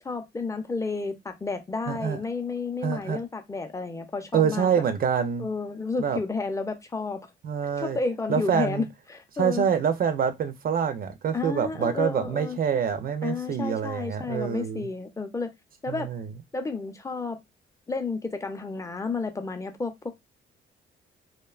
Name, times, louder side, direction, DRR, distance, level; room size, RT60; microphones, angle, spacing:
voice 1, 0.0-4.7 5.4-7.2 7.8-9.7 11.3-12.6 13.2-15.5 15.8-16.1 16.5-17.4 17.9-19.9, left 4 dB, 15° left, 0.5 m, -31 dB
voice 2, 1.9-2.2 2.8-3.2 4.3-5.5 6.0-6.2 7.4-8.0 8.3-8.9 9.4-14.9 15.9-16.3, right 7 dB, 50° right, 0.4 m, -26 dB
2.6 x 2.1 x 2.3 m
cardioid pair, 90°, 20 cm